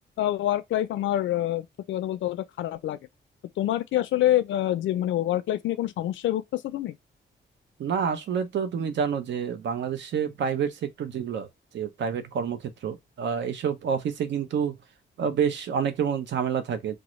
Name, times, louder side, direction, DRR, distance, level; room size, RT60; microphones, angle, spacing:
voice 1, 0.2-3.0 3.6-7.0, left 13 dB, 85° left, 0.5 m, -26 dB
voice 2, 7.8-11.5 11.7-14.8 15.2-17.0, right 7 dB, 70° right, 0.7 m, -28 dB
3.7 x 2.0 x 3.0 m
cardioid pair, 125°, 19 cm